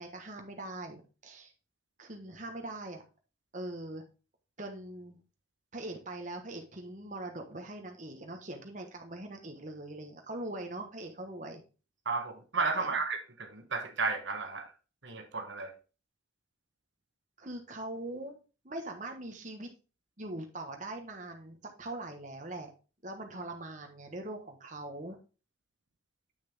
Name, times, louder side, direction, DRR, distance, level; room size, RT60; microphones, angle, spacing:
voice 1, 0.0-1.5 2.0-3.0 3.5-4.0 4.6-5.2 5.7-11.6 12.8-13.0 17.4-18.4 18.6-19.7 20.2-22.7 23.0-25.2, right 2 dB, 40° right, 1.3 m, -42 dB
voice 2, 12.0-14.7 15.0-15.7, right 4 dB, 65° right, 1.2 m, -33 dB
8.4 x 6.2 x 3.6 m
head